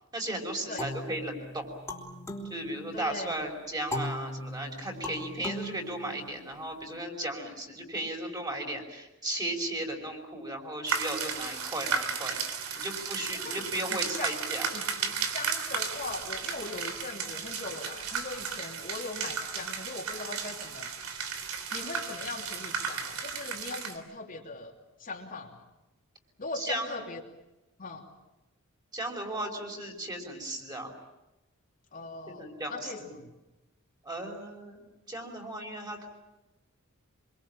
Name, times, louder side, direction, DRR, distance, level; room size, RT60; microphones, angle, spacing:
voice 1, 0.1-1.7 2.4-12.3 12.8-15.1 26.5-27.1 28.9-30.9 32.3-33.1 34.0-34.8 35.1-36.1, right 1 dB, 20° right, 2 dB, 5.1 m, -36 dB
sound 1, 0.8-3.3 3.9-6.7, left 1 dB, 10° left, 3.6 m, -39 dB
voice 2, 2.9-3.4 13.3-14.4 14.7-14.8 15.3-20.9 21.7-24.7 25.0-25.5 26.4-27.2 27.8-28.0 31.9-33.3, left 3 dB, 40° left, 0 dB, 2.9 m, -40 dB
sound 2, 10.9-24.0, right 6 dB, 85° right, 3.3 m, -34 dB
25.5 x 23.5 x 8.8 m, 1.0 s
head